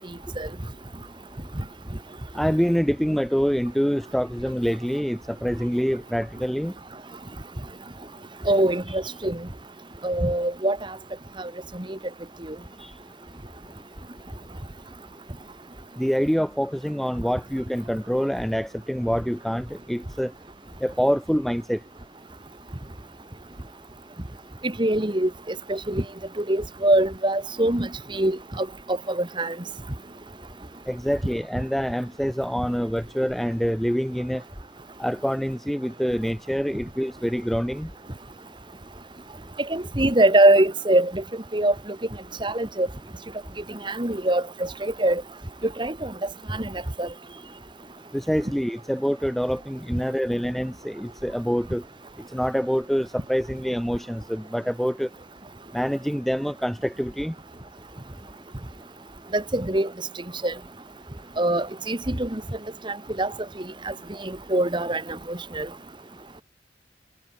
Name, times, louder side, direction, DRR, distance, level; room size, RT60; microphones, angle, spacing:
voice 1, 2.3-6.7 12.8-12.9 16.0-20.3 20.8-21.8 30.9-34.4 35.0-37.9 48.1-51.8 52.3-55.1 55.7-57.3, equal, ahead, 0.4 m, -26 dB
voice 2, 8.4-9.5 10.0-10.9 11.4-12.0 12.5-12.6 24.6-26.0 26.4-29.5 39.7-41.2 41.5-41.9 42.4-42.9 43.7-45.2 45.6-46.1 46.5-47.1 59.3-59.9 60.4-60.5 61.4-62.4 62.8-63.3 63.6-63.9 64.2-65.7, right 1 dB, 25° right, 1.7 m, -23 dB
head